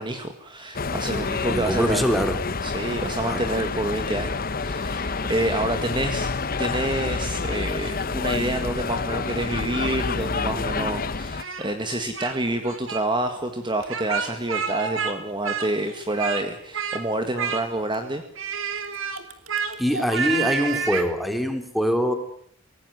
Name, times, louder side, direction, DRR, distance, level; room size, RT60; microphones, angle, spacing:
voice 1, 0.0-2.1 2.6-6.3 6.6-18.2, right 1 dB, 25° right, 6 dB, 1.9 m, -28 dB
sound 1, 0.7-11.4, left 4 dB, 45° left, 1.0 m, -28 dB
voice 2, 1.5-2.4 3.2-3.5 19.8-22.1, equal, ahead, 6 dB, 3.3 m, -23 dB
Speech, 11.4-12.4 12.6-13.0 13.8-15.2 15.4-16.5 16.7-17.0 17.4-18.0 18.4-21.1, right 6 dB, 75° right, 2.8 m, -29 dB
24.5 x 18.5 x 9.3 m, 0.64 s
head